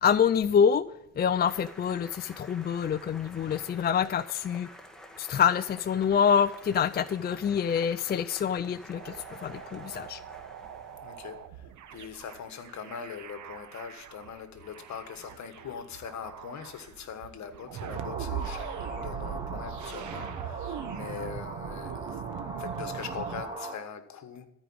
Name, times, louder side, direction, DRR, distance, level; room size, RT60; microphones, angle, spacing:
voice 1, 0.0-0.8 1.2-4.7 5.2-9.2 9.4-10.2, left 7 dB, 35° left, 0.4 m, -26 dB
sound 1, 1.4-11.3, equal, ahead, 1.7 m, -50 dB
sound 2, 8.9-23.4, right 9 dB, 75° right, 1.2 m, -41 dB
voice 2, 11.0-22.2 22.6-24.5, left 7 dB, 65° left, 1.5 m, -42 dB
sound 3, 17.9-23.8, right 2 dB, 15° right, 2.1 m, -40 dB
13.5 x 5.1 x 8.6 m
cardioid pair, 90°, 30 cm